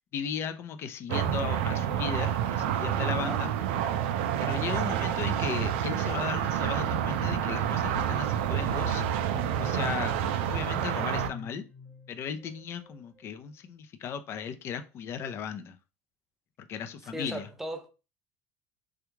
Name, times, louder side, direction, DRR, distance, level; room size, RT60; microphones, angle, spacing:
voice 1, 0.1-3.5 4.4-9.0 9.6-10.2 10.5-11.6 12.1-15.8 16.7-17.5, left 7 dB, 40° left, 0.5 m, -36 dB
sound 1, 1.1-11.3, right 10 dB, 80° right, 0.4 m, -28 dB
voice 2, 3.0-3.4 17.0-17.9, right 1 dB, 5° right, 0.5 m, -38 dB
sound 2, 3.8-13.3, left 4 dB, 20° left, 0.9 m, -48 dB
3.4 x 2.3 x 3.1 m
supercardioid pair, 115°, 6 cm